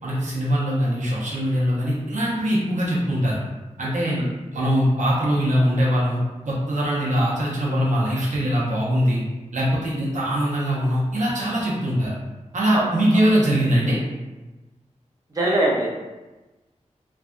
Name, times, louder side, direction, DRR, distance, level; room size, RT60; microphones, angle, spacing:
voice 1, 0.0-3.4 3.8-4.2 4.5-6.2 6.4-9.2 9.5-12.2 12.5-14.0, equal, 75° right, -6 dB, 0.9 m, -22 dB
voice 2, 15.3-15.9, right 1 dB, 30° right, -5 dB, 0.7 m, -22 dB
3.3 x 2.2 x 2.5 m, 1.1 s
wide cardioid pair, 60°, 13 cm